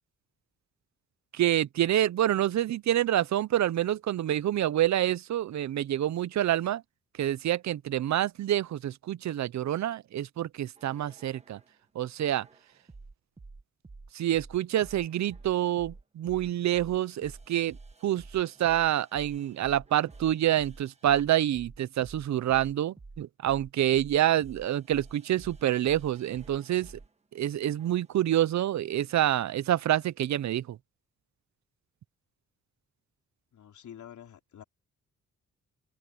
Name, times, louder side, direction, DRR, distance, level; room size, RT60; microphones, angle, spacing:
voice 1, 1.3-6.8 7.2-11.6 12.0-12.5 14.1-17.8 18.0-26.9 27.3-30.8, right 12 dB, 70° right, 0.6 m, -27 dB
sound 1, 10.8-11.7 12.4-27.1 27.8-28.2, right 3 dB, 20° right, 1.7 m, -50 dB
voice 2, 33.5-34.6, left 9 dB, 80° left, 3.9 m, -48 dB
open air
wide cardioid pair, 145°, 29 cm